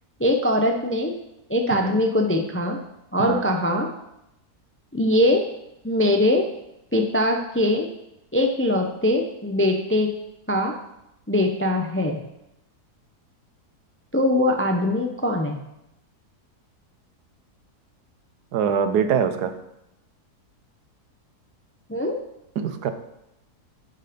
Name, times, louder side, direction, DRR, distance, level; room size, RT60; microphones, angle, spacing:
voice 1, 0.2-1.1 1.5-2.8 3.1-3.9 4.9-5.4 5.8-6.5 6.9-7.9 8.3-10.1 10.5-10.7 11.3-12.2 14.1-15.6 21.9-22.1, left 1 dB, 20° left, 3 dB, 0.4 m, -22 dB
voice 2, 1.7-2.0 3.2-3.4 18.5-19.5 22.6-22.9, right 7 dB, 90° right, 9 dB, 1.4 m, -23 dB
10.5 x 5.7 x 5.2 m, 0.86 s
omnidirectional pair, 1.7 m